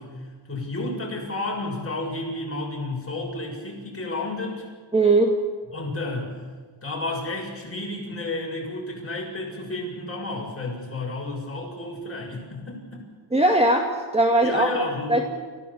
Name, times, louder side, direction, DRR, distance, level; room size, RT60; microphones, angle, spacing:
voice 1, 0.0-4.7 5.7-6.4 6.8-13.1 14.4-15.2, left 2 dB, 30° left, -2 dB, 7.2 m, -31 dB
voice 2, 4.9-5.3 13.3-14.7 15.1-15.2, right 2 dB, 15° right, 2 dB, 2.1 m, -19 dB
29.5 x 16.0 x 7.3 m, 1.5 s
wide cardioid pair, 105°, 44 cm